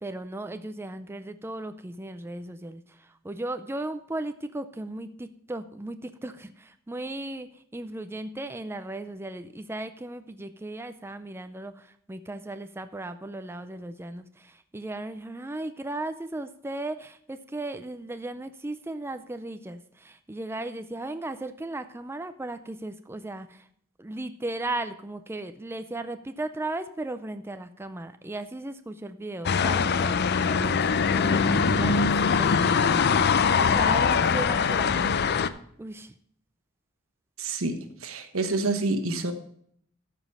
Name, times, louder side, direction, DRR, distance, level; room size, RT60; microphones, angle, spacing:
voice 1, 0.0-23.7 24.0-35.3 35.8-36.1, right 2 dB, 10° right, 9 dB, 0.4 m, -36 dB
sound 1, 29.5-35.5, left 5 dB, 55° left, 0.5 m, -22 dB
voice 2, 37.4-39.3, right 2 dB, 85° right, 8 dB, 1.3 m, -28 dB
13.5 x 5.0 x 5.5 m, 0.65 s
head